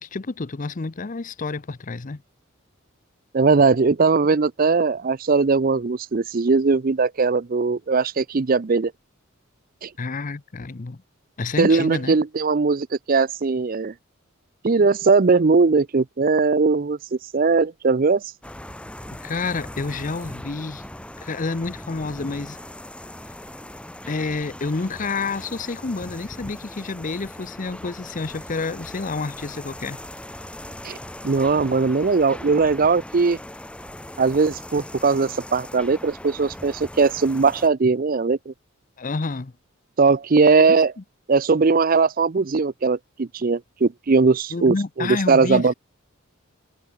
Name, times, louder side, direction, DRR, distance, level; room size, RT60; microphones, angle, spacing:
voice 1, 0.0-2.2 10.0-11.0 11.4-12.2 19.2-20.8 21.2-22.6 24.1-30.0 39.0-39.5 44.5-45.7, left 3 dB, 40° left, 0.6 m, -29 dB
voice 2, 3.3-8.9 9.8-9.9 11.6-13.9 14.6-18.2 30.8-31.0 31.2-33.4 34.2-38.5 40.0-40.9 41.3-45.7, right 4 dB, 40° right, 0.5 m, -19 dB
sound 1, 18.4-37.7, left 1 dB, 5° left, 1.6 m, -39 dB
head